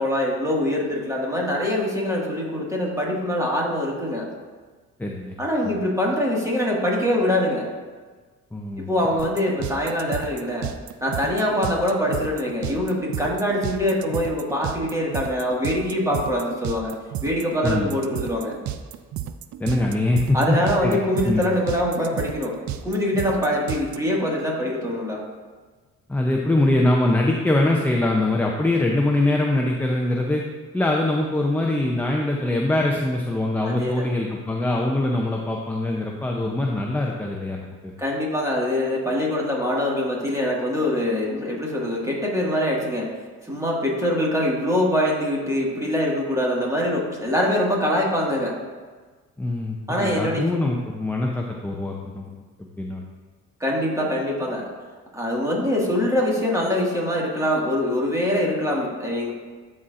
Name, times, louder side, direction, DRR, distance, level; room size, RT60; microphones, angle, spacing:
voice 1, 0.0-4.3 5.4-7.7 8.8-10.7 11.0-16.9 17.2-18.5 20.3-22.6 22.8-25.2 33.6-34.1 38.0-43.1 43.4-48.5 49.9-50.4 53.6-54.7 55.1-59.3, left 1 dB, 10° right, -3 dB, 1.8 m, -24 dB
voice 2, 5.0-5.4 5.6-5.8 8.5-8.9 17.6-17.9 19.6-21.0 21.2-21.4 26.1-30.4 30.7-37.9 49.4-52.3 52.8-53.0, left 2 dB, 5° left, -1 dB, 0.6 m, -23 dB
sound 1, 9.2-24.0, right 11 dB, 70° right, 0.5 m, -32 dB
12.0 x 4.3 x 2.5 m, 1.4 s
cardioid pair, 90°, 30 cm